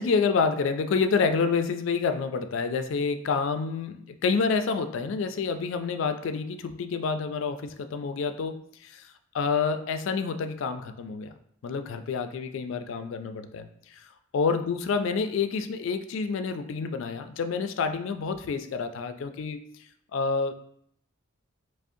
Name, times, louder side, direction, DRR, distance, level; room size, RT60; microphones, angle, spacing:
voice 1, 0.0-9.1 9.3-11.3 11.6-14.0 14.3-19.6 20.1-20.5, left 5 dB, 65° left, 8 dB, 0.3 m, -28 dB
4.9 x 2.0 x 2.6 m, 0.68 s
head